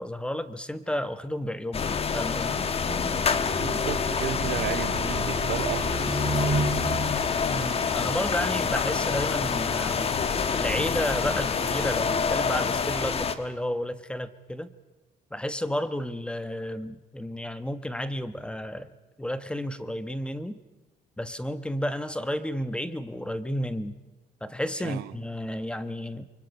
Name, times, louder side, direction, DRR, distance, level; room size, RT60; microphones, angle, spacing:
voice 1, 0.0-2.7 7.5-10.2 10.5-14.7 15.3-18.9 19.2-20.6 21.2-24.0 24.4-26.2, equal, 5° left, 12 dB, 1.1 m, -32 dB
sound 1, 1.7-13.3, left 5 dB, 35° left, 1.4 m, -27 dB
sound 2, 2.9-8.4, right 2 dB, 30° right, 5.6 m, -33 dB
voice 2, 3.6-6.1 24.8-25.1, right 15 dB, 80° right, 15 dB, 0.9 m, -33 dB
sound 3, 5.7-13.0, left 7 dB, 65° left, 2.6 m, -39 dB
29.0 x 24.0 x 5.4 m, 1.1 s
cardioid pair, 110°, 17 cm